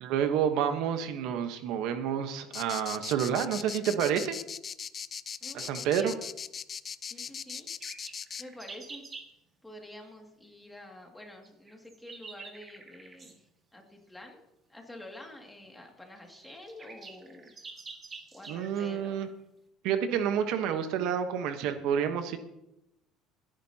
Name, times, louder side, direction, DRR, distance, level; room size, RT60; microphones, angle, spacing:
voice 1, 0.0-4.3 5.5-6.1 18.5-19.3 19.8-22.4, right 8 dB, 70° right, 7 dB, 1.1 m, -29 dB
sound 1, 2.5-8.4, left 7 dB, 30° left, 0.5 m, -39 dB
voice 2, 5.4-6.2 7.0-7.7 8.4-9.1 9.6-14.4 14.7-17.5 18.3-19.3, left 1 dB, 5° left, 1 dB, 2.3 m, -48 dB
sound 2, 7.3-9.3 11.4-13.4 15.2-15.3 15.9-16.0 16.2-18.9, right 4 dB, 25° right, 1.8 m, -48 dB
26.0 x 10.5 x 2.9 m, 0.88 s
cardioid pair, 140°, 0 cm